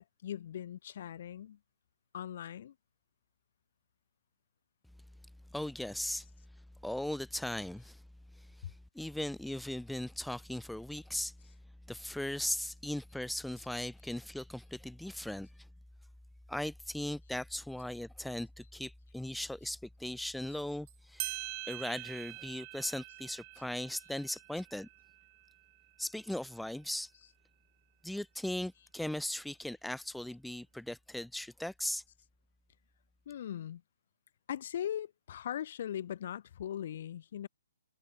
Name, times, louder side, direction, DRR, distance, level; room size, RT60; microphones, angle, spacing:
voice 1, 0.0-1.6 2.1-2.7 8.6-8.7 33.3-33.8 34.5-37.5, left 10 dB, 45° left, 0.9 m, -40 dB
voice 2, 5.5-6.3 6.8-8.0 8.4-11.3 11.9-15.5 16.5-21.4 21.7-24.9 26.0-27.1 28.0-32.0, left 1 dB, ahead, 0.4 m, -38 dB
sound 1, 20.9-21.0 21.2-26.3, right 33 dB, 25° right, 1.5 m, -45 dB
figure-of-eight pair, 130°, 0 cm